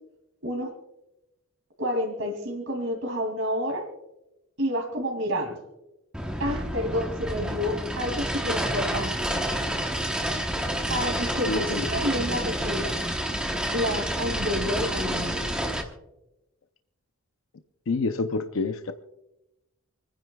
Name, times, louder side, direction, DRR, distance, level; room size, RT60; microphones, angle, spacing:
voice 1, 1.8-3.8 4.6-5.5 6.4-9.1 10.9-13.0 13.7-15.5, equal, 65° right, 2 dB, 2.7 m, -29 dB
sound 1, 6.1-15.8, right 1 dB, 5° right, 1.0 m, -29 dB
voice 2, 11.5-12.0 17.9-18.9, left 3 dB, 70° left, 8 dB, 0.6 m, -28 dB
28.5 x 10.0 x 2.3 m, 0.93 s
head